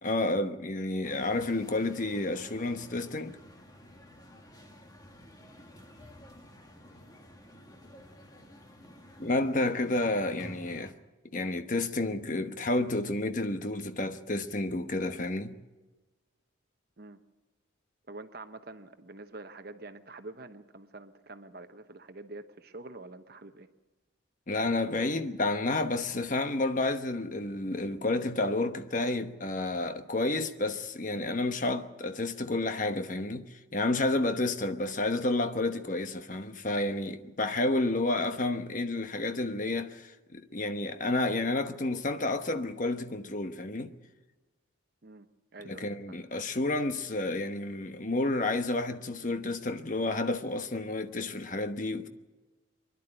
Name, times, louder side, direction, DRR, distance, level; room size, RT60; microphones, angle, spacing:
voice 1, 0.0-3.4 9.2-10.9 11.3-15.6 24.5-43.9 45.7-52.1, left 2 dB, 40° left, 1.0 m, -30 dB
sound 1, 1.0-10.9, equal, 20° left, 1.7 m, -51 dB
voice 2, 18.1-23.7 45.0-45.3 45.5-46.2, right 2 dB, 50° right, 1.0 m, -46 dB
24.5 x 11.5 x 9.9 m
head